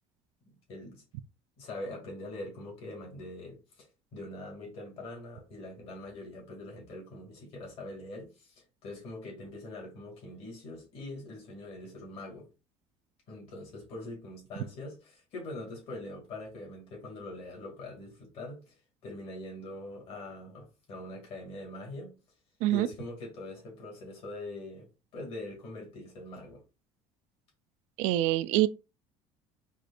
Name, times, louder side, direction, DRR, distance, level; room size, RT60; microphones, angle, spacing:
voice 1, 0.5-1.0 1.6-12.5 13.3-18.7 19.0-22.1 22.7-24.9 25.1-26.6, left 2 dB, 50° left, 2.2 m, -43 dB
voice 2, 28.0-28.7, right 15 dB, 80° right, 0.4 m, -25 dB
5.0 x 2.5 x 2.4 m
cardioid pair, 140°, 12 cm